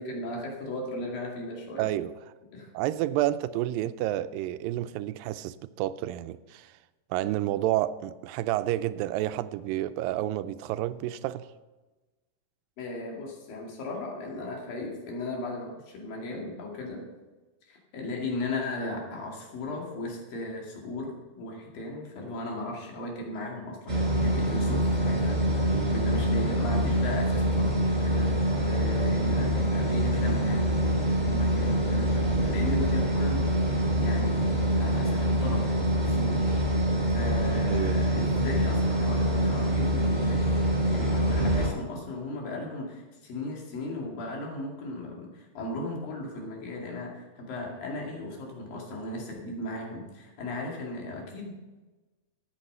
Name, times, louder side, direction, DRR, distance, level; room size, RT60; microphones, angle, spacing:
voice 1, 0.0-1.9 2.5-2.7 12.8-17.1 17.7-33.4 34.0-36.5 37.1-40.5 40.9-51.6, left 2 dB, 85° left, 4.1 m, -36 dB
voice 2, 1.8-2.1 2.7-6.7 7.1-11.5 25.7-25.9 37.7-38.3, right 14 dB, 85° right, 2.3 m, -30 dB
sound 1, 23.9-41.7, right 1 dB, 10° right, 3.1 m, -25 dB
13.0 x 8.4 x 5.5 m
omnidirectional pair, 3.9 m